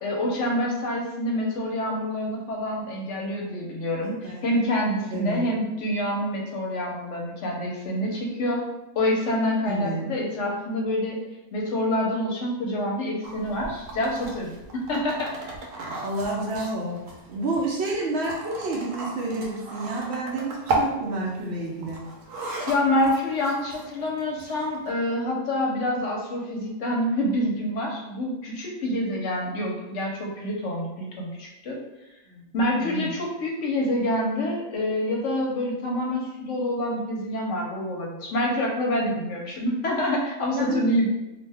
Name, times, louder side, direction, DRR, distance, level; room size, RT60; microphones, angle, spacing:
voice 1, 0.0-8.7 9.0-11.2 11.5-15.3 22.7-31.8 32.5-41.1, left 1 dB, 70° left, -1 dB, 0.9 m, -27 dB
voice 2, 5.1-5.4 9.7-10.0 16.0-17.0 17.3-22.0 32.3-32.5 32.8-33.1 40.5-40.8, right 2 dB, 60° right, -3 dB, 0.8 m, -29 dB
sound 1, 13.2-24.9, right 2 dB, 85° right, 1.0 m, -35 dB
2.5 x 2.1 x 3.3 m, 0.99 s
omnidirectional pair, 1.4 m